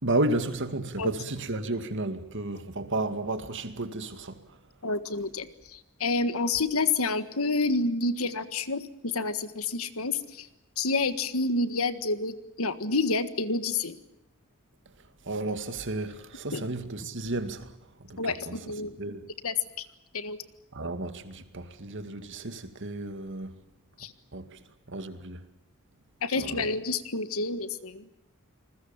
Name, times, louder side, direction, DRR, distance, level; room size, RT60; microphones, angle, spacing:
voice 1, 0.0-4.4 15.3-17.7 18.1-18.2 18.4-18.6 19.0-19.3 20.7-23.5 24.3-24.6 24.9-25.4 26.3-26.7, right 2 dB, 60° right, 2.2 m, -32 dB
voice 2, 4.8-10.5 10.8-14.0 16.5-16.7 18.2-18.9 19.4-19.8 20.1-20.4 24.0-24.1 26.2-28.0, left 3 dB, 90° left, 1.6 m, -29 dB
28.0 x 21.0 x 7.3 m
head